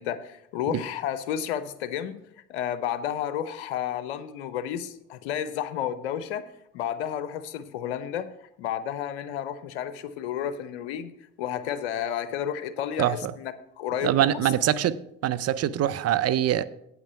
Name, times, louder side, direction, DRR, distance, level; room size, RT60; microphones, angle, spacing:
voice 1, 0.0-2.2 2.5-11.1 11.4-14.5, left 9 dB, 90° left, 0.7 m, -31 dB
voice 2, 13.0-13.3 14.0-15.0 15.2-16.6, right 11 dB, 50° right, 0.6 m, -24 dB
8.6 x 5.9 x 6.8 m
hypercardioid pair, 65°, 32 cm